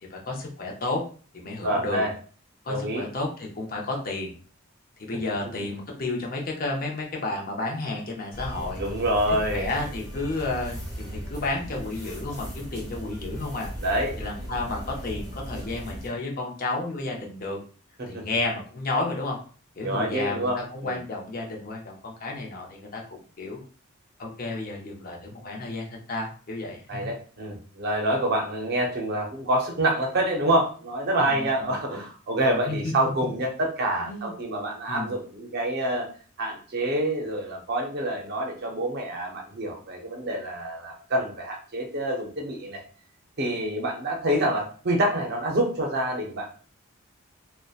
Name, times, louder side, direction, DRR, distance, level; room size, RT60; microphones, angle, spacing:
voice 1, 0.1-1.0 1.3-2.0 2.6-4.3 5.0-8.8 9.3-13.7 14.2-17.6 18.1-19.4 19.8-23.6 24.2-27.1 31.2-31.7 32.5-32.9 34.0-34.3 34.9-35.1, left 2 dB, 45° left, 0 dB, 0.6 m, -32 dB
voice 2, 1.6-2.1 2.7-3.1 8.8-9.7 13.8-14.2 18.0-18.2 19.8-21.0 26.9-36.1 36.4-42.8 43.4-46.5, right 1 dB, 50° right, 1 dB, 0.5 m, -27 dB
sound 1, 8.3-16.1, equal, 10° left, 1.1 m, -37 dB
2.6 x 2.1 x 2.3 m, 0.40 s
head